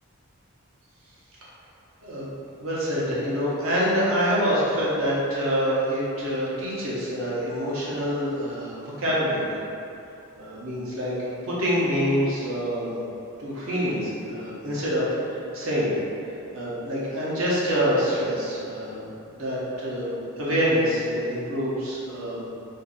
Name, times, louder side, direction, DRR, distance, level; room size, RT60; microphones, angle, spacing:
voice 1, 2.6-9.6 10.4-13.0 13.4-16.0 16.5-19.1 19.3-22.4, equal, 65° right, -7 dB, 0.9 m, -26 dB
2.6 x 2.6 x 3.9 m, 2.7 s
head